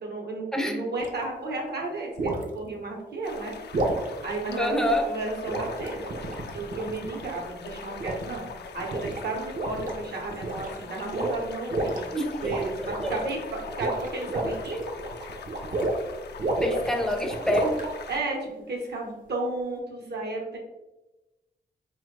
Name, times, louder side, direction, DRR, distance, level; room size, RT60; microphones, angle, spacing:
voice 1, 0.0-3.6 4.2-4.8 5.0-6.0 6.5-8.5 8.7-12.1 12.4-14.9 18.1-20.6, right 3 dB, 70° right, -1 dB, 1.0 m, -33 dB
sound 1, 1.0-1.2 2.2-2.5 3.7-4.1 5.5-7.3 8.0-8.5 8.8-9.2 9.5-10.0 10.3-10.8 11.1-12.0 12.4-13.3 13.7-16.1 16.4-17.9, right 2 dB, 50° right, 0.6 m, -30 dB
sound 2, 3.2-18.2, left 5 dB, 75° left, 0.4 m, -42 dB
voice 2, 4.6-5.1 12.1-12.6 13.0-13.1 16.6-17.9, left 1 dB, 5° left, 3 dB, 0.5 m, -26 dB
4.1 x 2.4 x 3.2 m, 1.1 s
wide cardioid pair, 135°, 18 cm